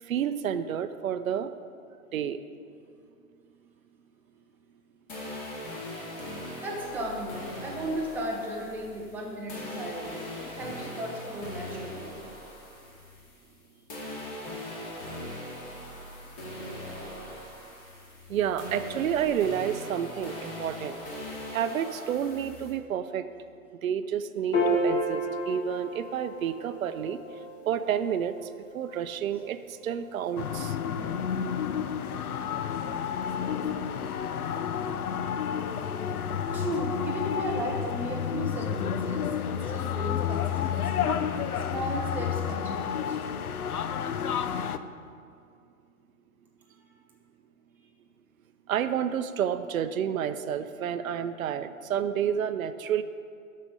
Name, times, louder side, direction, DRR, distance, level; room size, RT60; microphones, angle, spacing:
voice 1, 0.1-1.5 2.1-2.4 18.3-21.0 21.5-23.2 23.8-27.2 27.7-28.3 28.7-30.8 48.7-53.0, right 9 dB, 65° right, 10 dB, 0.6 m, -30 dB
sound 1, 5.1-13.6 13.9-22.7, left 1 dB, 30° left, 2.4 m, -40 dB
voice 2, 6.6-12.1 36.5-41.1 41.5-43.2, equal, 5° right, -2 dB, 0.5 m, -35 dB
Piano, 24.5-31.2, equal, 50° left, 2.4 m, -33 dB
sound 2, 30.4-44.8, left 8 dB, 75° left, 0.6 m, -30 dB
9.4 x 6.6 x 5.3 m, 2.4 s
figure-of-eight pair, 120°, 44 cm